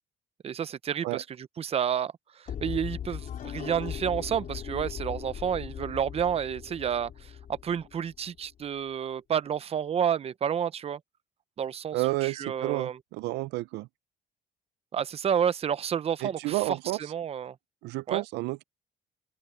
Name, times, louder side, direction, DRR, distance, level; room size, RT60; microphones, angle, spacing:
voice 1, 0.4-11.0 11.6-13.0 14.9-17.6 18.1-18.2, right 8 dB, 35° right, 0.7 m, -30 dB
sound 1, 2.5-8.4, left 9 dB, 55° left, 5.2 m, -39 dB
voice 2, 11.9-13.9 16.2-17.0 17.8-18.6, right 19 dB, 85° right, 0.5 m, -30 dB
cardioid pair, 110°, 17 cm